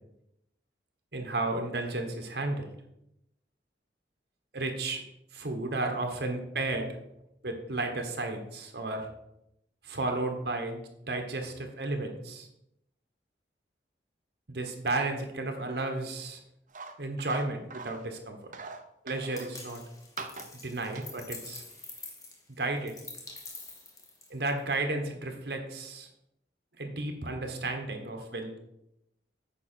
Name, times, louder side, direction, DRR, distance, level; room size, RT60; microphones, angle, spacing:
voice 1, 1.1-2.7 4.5-5.0 5.3-6.9 7.4-9.1 9.8-12.5 14.5-16.4 17.0-18.4 19.0-19.8 20.6-21.6 22.6-22.9 24.3-26.1 26.8-28.6, right 2 dB, 65° right, 4 dB, 1.2 m, -33 dB
sound 1, 16.7-18.1 18.5-19.5 20.2-20.7 20.9-21.1 21.7-21.8 22.9-23.0, right 4 dB, 45° right, 0.8 m, -42 dB
sound 2, 19.4-24.6, left 3 dB, 20° left, 1.1 m, -46 dB
8.8 x 5.8 x 4.5 m, 0.81 s
head